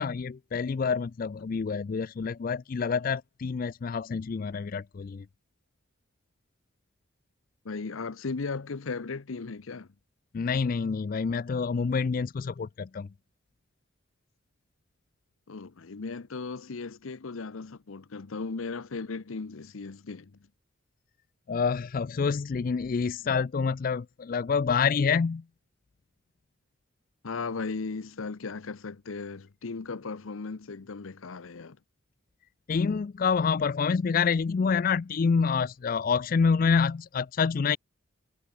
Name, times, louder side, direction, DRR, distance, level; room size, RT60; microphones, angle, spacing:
voice 1, 0.0-5.3 10.3-13.1 21.5-25.4 32.7-37.8, left 5 dB, 40° left, 0.3 m, -27 dB
voice 2, 7.6-9.9 15.5-20.3 27.2-31.8, left 4 dB, 80° left, 0.7 m, -36 dB
head